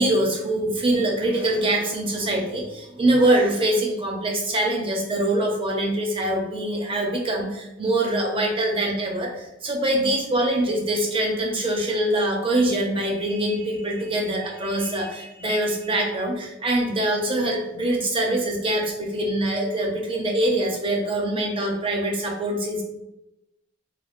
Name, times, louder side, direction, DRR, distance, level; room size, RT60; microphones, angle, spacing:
voice 1, 0.0-22.8, right 1 dB, 30° right, 0 dB, 0.6 m, -24 dB
3.2 x 2.3 x 2.4 m, 0.91 s
head